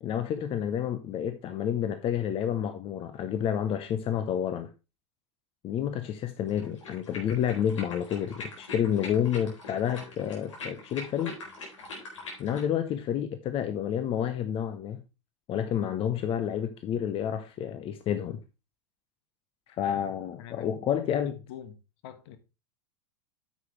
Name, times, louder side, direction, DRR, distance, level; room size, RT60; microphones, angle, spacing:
voice 1, 0.0-4.7 5.6-11.4 12.4-15.0 15.5-18.4 19.8-21.4, left 9 dB, 35° left, 0.9 m, -29 dB
sound 1, 6.5-12.7, left 2 dB, 80° left, 4.2 m, -43 dB
voice 2, 19.9-20.8 21.2-21.8 22.0-22.4, left 10 dB, 60° left, 1.5 m, -46 dB
9.5 x 7.4 x 3.3 m
hypercardioid pair, 90°, 16 cm